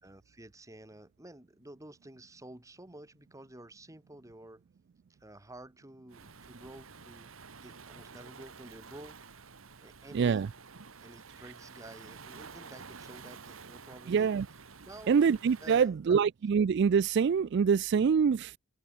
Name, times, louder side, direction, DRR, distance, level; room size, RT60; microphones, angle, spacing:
voice 1, 0.0-4.6 5.2-7.3 7.6-10.5 11.0-14.3 14.8-15.2 15.6-16.2, right 1 dB, 15° right, 2.0 m, -51 dB
Waves surf, 6.1-15.9, right 5 dB, 85° right, 1.6 m, -50 dB
voice 2, 10.1-10.5 14.1-14.5 15.1-18.6, right 6 dB, 55° right, 0.3 m, -25 dB
head